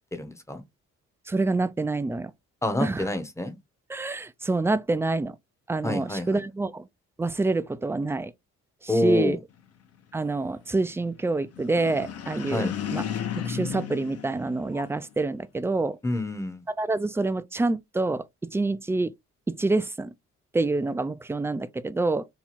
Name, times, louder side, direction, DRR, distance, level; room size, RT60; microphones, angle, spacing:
voice 1, 0.1-0.6 2.6-3.6 5.8-6.4 8.9-9.4 12.5-12.7 16.0-16.6, left 2 dB, 10° left, 0.7 m, -27 dB
voice 2, 1.3-2.3 2.8-3.0 3.9-5.4 5.7-6.9 7.2-8.3 8.8-9.4 10.1-13.0 13.4-16.0 16.8-18.3 18.5-19.1 19.6-20.1 20.5-22.3, right 3 dB, 10° right, 0.3 m, -27 dB
sound 1, 11.5-15.1, left 8 dB, 55° left, 0.8 m, -34 dB
3.0 x 2.3 x 4.1 m
cardioid pair, 90°, 30 cm